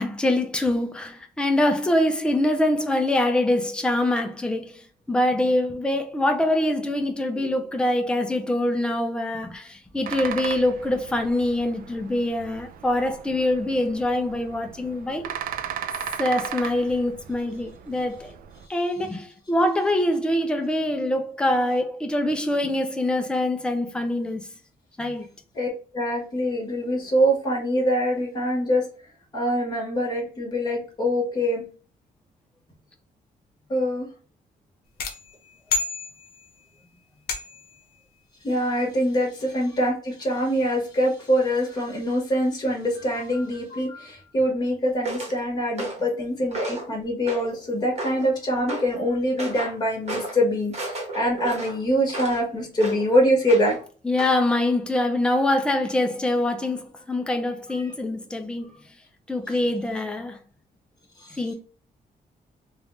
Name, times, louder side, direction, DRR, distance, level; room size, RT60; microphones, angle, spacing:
voice 1, 0.0-4.8 5.1-15.3 16.2-18.3 18.7-24.4 25.0-25.2 54.0-58.7 59.3-60.4 61.4-61.5, left 1 dB, 5° left, 0.5 m, -24 dB
sound 1, 10.0-18.7, right 9 dB, 70° right, 0.4 m, -37 dB
voice 2, 25.9-28.9 29.3-31.6 33.7-34.1 38.4-53.8 57.8-57.9 61.2-61.3, equal, 25° left, 1.4 m, -24 dB
sound 2, 35.0-36.6 37.3-37.8, left 4 dB, 75° left, 0.9 m, -30 dB
sound 3, 45.0-45.4 45.8-46.1 46.5-46.9 47.3-47.6 48.0-48.3 48.7-48.9 49.4-49.8 50.1-50.4 50.7-52.4 52.8-53.1 53.5-53.8 54.2-54.4, right 2 dB, 45° right, 1.1 m, -33 dB
3.4 x 2.4 x 3.1 m
wide cardioid pair, 170°, 16 cm